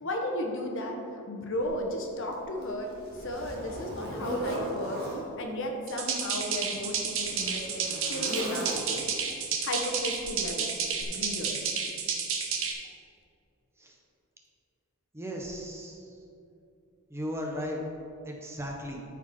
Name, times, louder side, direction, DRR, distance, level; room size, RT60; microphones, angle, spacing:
voice 1, 0.0-1.0 1.3-2.9 3.2-5.0 5.4-9.1 9.6-10.8 11.1-11.6, left 1 dB, 60° left, 2 dB, 1.2 m, -34 dB
Zipper (clothing), 1.6-1.7 2.3-5.3 6.2-9.2 10.2-10.4 11.0-11.1, right 1 dB, 45° right, 1.6 m, -38 dB
sound 1, 5.9-12.7, right 6 dB, 60° right, 1.1 m, -31 dB
voice 2, 15.1-16.1 17.1-17.8 18.2-19.0, equal, 10° right, 0 dB, 1.0 m, -36 dB
13.0 x 5.0 x 4.3 m, 2.6 s
head